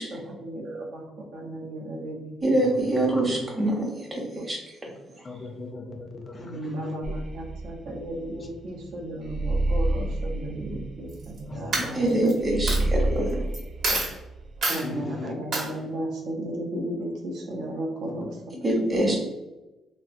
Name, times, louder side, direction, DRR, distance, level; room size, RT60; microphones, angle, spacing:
voice 1, 0.1-2.4 3.2-3.3 4.4-4.5 6.4-12.3 12.8-12.9 13.2-13.3 13.9-14.0 14.7-18.9, right 1 dB, 75° right, -1 dB, 0.7 m, -34 dB
voice 2, 2.4-4.8 5.2-5.4 11.9-13.2 18.6-19.2, right 1 dB, 20° right, -1 dB, 0.8 m, -25 dB
voice 3, 5.2-6.9 11.5-12.0 14.8-15.3, left 3 dB, 30° left, 3 dB, 0.3 m, -38 dB
sound 1, 7.0-14.6, right 2 dB, 45° right, 0.4 m, -29 dB
Coin (dropping), 11.1-11.4 11.7-12.3 12.7-12.8 13.5-13.6 13.8-14.1 14.6-14.8 15.5-15.7, right 2 dB, 60° right, 0.9 m, -26 dB
3.4 x 2.0 x 2.5 m, 1.0 s
cardioid pair, 135°, 0 cm